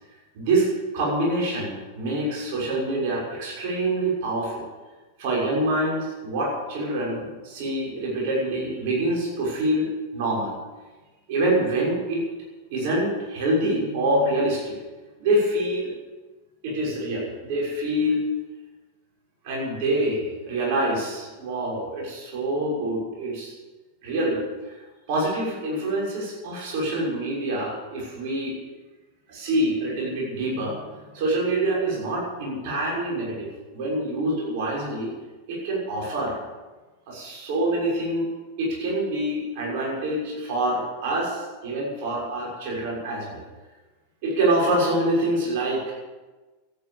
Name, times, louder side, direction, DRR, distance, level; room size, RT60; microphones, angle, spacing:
voice 1, 0.3-0.7 0.9-4.7 5.2-10.5 11.3-12.2 12.7-14.7 15.2-15.9 16.6-18.2 19.4-23.5 24.0-24.8 25.1-28.6 29.3-30.8 31.1-35.1 35.5-36.4 37.1-38.3 38.6-43.4 44.2-45.9, right 1 dB, 50° right, -4 dB, 6.3 m, -26 dB
14.0 x 9.7 x 9.0 m, 1.2 s
figure-of-eight pair, 90°, 0 cm